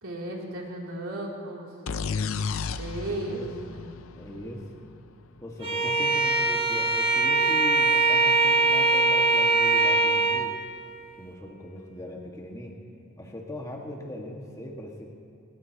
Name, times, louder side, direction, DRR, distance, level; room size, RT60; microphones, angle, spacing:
voice 1, 0.0-1.7 2.8-3.9, right 1 dB, 90° right, -2 dB, 3.1 m, -35 dB
sound 1, 1.9-5.5, left 5 dB, 80° left, 0.6 m, -33 dB
voice 2, 3.1-3.8 4.2-4.7 5.4-10.6 11.2-12.7 13.2-15.1, left 1 dB, 15° left, -1 dB, 1.7 m, -39 dB
Bowed string instrument, 5.6-10.5, right 3 dB, 25° right, 1.3 m, -22 dB
21.0 x 19.5 x 2.9 m, 2.8 s
head